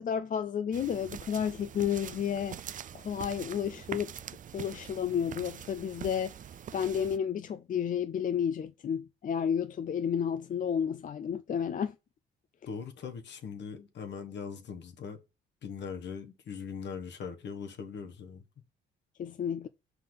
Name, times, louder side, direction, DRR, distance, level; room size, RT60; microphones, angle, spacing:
voice 1, 0.0-2.6 2.9-4.1 4.5-6.3 6.7-11.9 19.2-19.7, left 8 dB, 40° left, 0.5 m, -31 dB
sound 1, 0.7-7.2, right 9 dB, 40° right, 0.4 m, -44 dB
voice 2, 12.7-15.2 15.6-18.4, left 6 dB, 60° left, 1.4 m, -40 dB
5.7 x 5.6 x 3.9 m
cardioid pair, 90°, 20 cm